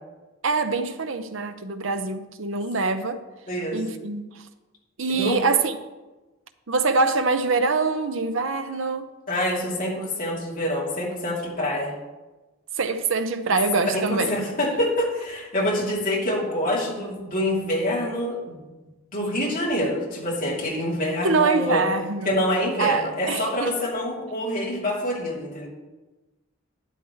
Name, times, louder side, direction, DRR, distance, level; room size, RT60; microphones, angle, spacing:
voice 1, 0.4-3.2 3.7-4.4 5.0-5.8 6.7-9.1 12.8-14.5 21.2-22.4 22.8-23.8, right 4 dB, 65° right, 0.7 m, -24 dB
voice 2, 3.5-3.8 5.1-5.4 9.3-11.9 13.5-13.6 13.9-18.6 19.1-21.8 22.2-25.7, left 1 dB, 40° left, 3.0 m, -26 dB
12.0 x 9.7 x 3.2 m
head